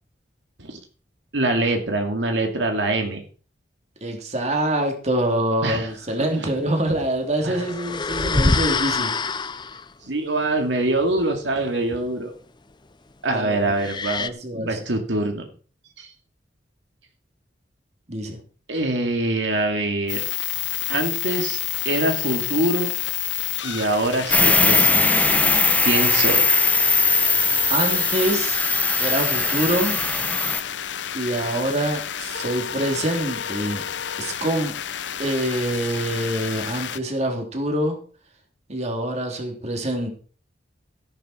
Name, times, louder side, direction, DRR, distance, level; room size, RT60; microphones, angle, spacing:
voice 1, 1.3-3.2 5.6-5.9 7.4-7.6 10.0-12.3 13.2-15.5 16.0-16.1 18.7-20.2 20.9-22.9 23.6-25.4 25.8-26.4, right 2 dB, 85° right, 4 dB, 2.5 m, -24 dB
voice 2, 4.0-9.1 13.3-13.7 14.2-14.9 18.1-18.4 20.6-20.7 27.7-28.6 29.0-30.0 31.1-33.8 34.2-34.8 35.2-38.0 38.7-40.1, right 1 dB, 40° right, 3 dB, 3.1 m, -25 dB
sound 1, 7.5-9.9 13.8-14.3, left 3 dB, 25° left, 0.7 m, -24 dB
sound 2, 20.1-37.0, left 10 dB, 80° left, 0.8 m, -30 dB
sound 3, 24.3-30.6, left 3 dB, 10° left, 1.1 m, -20 dB
14.0 x 11.5 x 4.5 m, 0.40 s
head